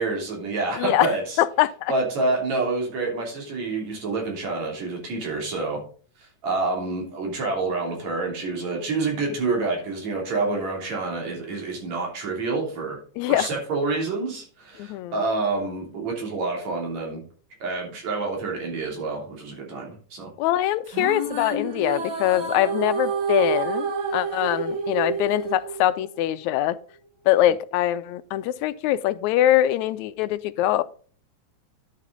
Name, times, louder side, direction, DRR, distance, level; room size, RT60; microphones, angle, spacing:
voice 1, 0.0-1.4 1.9-5.8 6.2-13.0 13.3-17.2 17.6-20.3, right 3 dB, 70° right, 0 dB, 4.1 m, -28 dB
voice 2, 0.8-1.1 1.4-1.9 13.2-13.5 14.8-15.2 20.4-26.8 27.3-30.8, left 13 dB, 80° left, 15 dB, 1.9 m, -23 dB
sound 1, 20.8-26.3, right 5 dB, 50° right, 2.3 m, -29 dB
10.5 x 6.4 x 3.7 m, 0.42 s
omnidirectional pair, 3.3 m